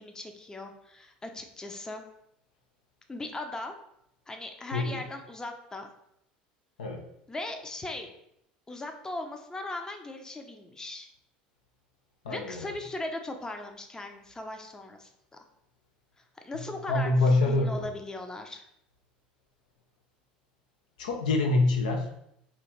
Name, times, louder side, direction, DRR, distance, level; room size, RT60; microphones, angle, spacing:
voice 1, 0.0-2.0 3.1-3.7 4.3-5.9 7.3-8.1 8.7-11.1 12.3-15.1 16.4-18.7, left 2 dB, 15° left, 4 dB, 0.5 m, -38 dB
voice 2, 4.7-5.0 6.8-7.0 12.2-12.7 16.9-17.9 21.0-22.1, left 2 dB, 80° left, 3 dB, 0.5 m, -25 dB
2.9 x 2.5 x 4.3 m, 0.76 s
hypercardioid pair, 75°, 4 cm